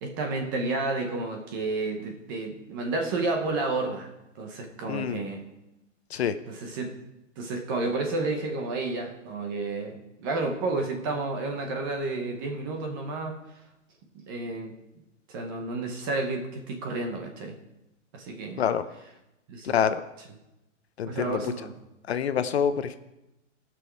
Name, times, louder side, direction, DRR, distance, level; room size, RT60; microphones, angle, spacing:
voice 1, 0.0-4.1 4.4-5.4 6.5-6.9 7.4-13.4 14.1-14.8 15.3-17.6 18.1-18.6 19.5-19.7 21.0-21.8, right 3 dB, 15° right, 3 dB, 0.8 m, -31 dB
voice 2, 4.9-5.2 6.1-6.4 18.6-18.9 19.6-20.0 21.0-21.4 22.1-23.0, left 8 dB, 55° left, 11 dB, 0.7 m, -26 dB
17.5 x 6.3 x 4.6 m, 0.91 s
hypercardioid pair, 165°, 38 cm